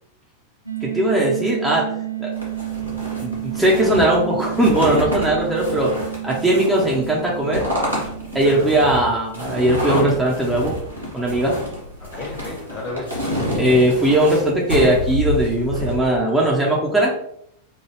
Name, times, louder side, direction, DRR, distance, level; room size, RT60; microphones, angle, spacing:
sound 1, 0.7-11.4, right 15 dB, 80° left, 0.5 m, -32 dB
voice 1, 0.8-1.9 2.2-2.3 3.2-5.9 6.2-7.7 8.3-10.8 11.1-11.6 13.6-17.1, right 1 dB, 5° right, -4 dB, 0.8 m, -19 dB
sound 2, 2.4-16.0, equal, 85° right, 1.3 m, -27 dB
voice 2, 8.4-9.1 11.4-11.5 12.0-13.2, left 2 dB, 30° left, 0 dB, 1.2 m, -34 dB
4.9 x 2.3 x 3.1 m, 0.70 s
figure-of-eight pair, 90°, 0 cm